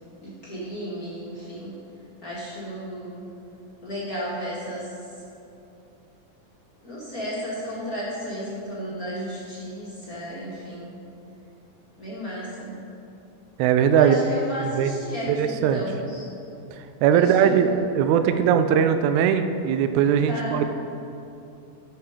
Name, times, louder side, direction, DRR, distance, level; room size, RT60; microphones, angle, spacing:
voice 1, 0.2-1.8 2.2-3.3 3.8-5.2 6.8-10.9 12.0-12.8 13.9-16.3 17.1-17.8 20.2-20.6, equal, 35° left, -8 dB, 1.7 m, -33 dB
voice 2, 13.6-14.2 14.8-14.9 15.3-15.8 17.0-20.6, right 8 dB, 85° right, 9 dB, 1.6 m, -20 dB
10.5 x 7.4 x 5.1 m, 2.8 s
omnidirectional pair, 4.0 m